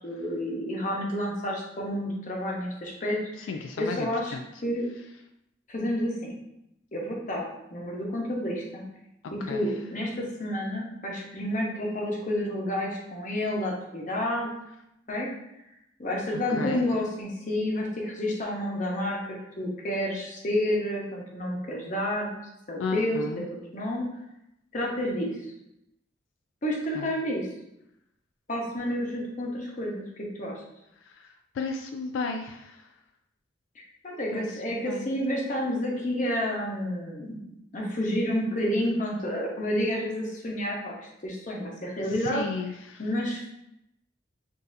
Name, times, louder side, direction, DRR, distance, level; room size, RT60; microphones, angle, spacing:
voice 1, 0.0-4.3 4.6-4.9 5.7-6.4 6.9-7.4 7.7-8.8 9.3-14.5 15.1-15.3 16.0-19.2 19.6-22.3 22.7-24.1 24.7-25.3 26.6-27.5 28.5-30.6 34.0-42.4 43.0-43.5, left 1 dB, 40° left, -2 dB, 0.9 m, -30 dB
voice 2, 3.4-4.4 9.4-9.7 16.5-16.8 22.8-23.4 27.0-27.1 31.1-32.8 34.3-35.1 42.2-43.0, left 4 dB, 85° left, 5 dB, 0.3 m, -34 dB
6.1 x 2.7 x 2.6 m, 0.84 s
head